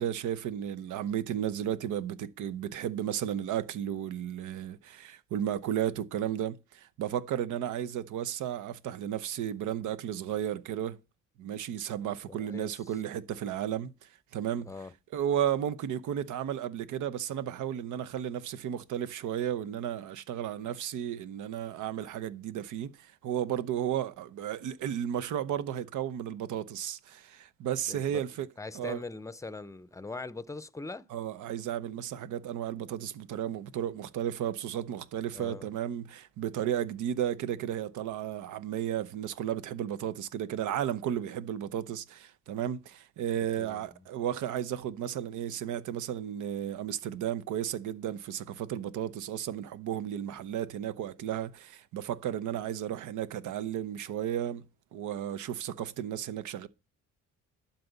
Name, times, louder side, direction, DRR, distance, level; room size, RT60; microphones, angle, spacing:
voice 1, 0.0-11.0 11.4-14.7 15.1-28.5 28.7-29.0 31.1-54.6 54.9-56.7, right 10 dB, 80° right, 0.9 m, -34 dB
voice 2, 12.3-12.7 14.7-14.9 27.9-28.2 28.6-31.1 35.3-35.7 43.6-44.0, left 3 dB, 10° left, 0.6 m, -41 dB
12.0 x 4.2 x 8.1 m
cardioid pair, 90°, 30 cm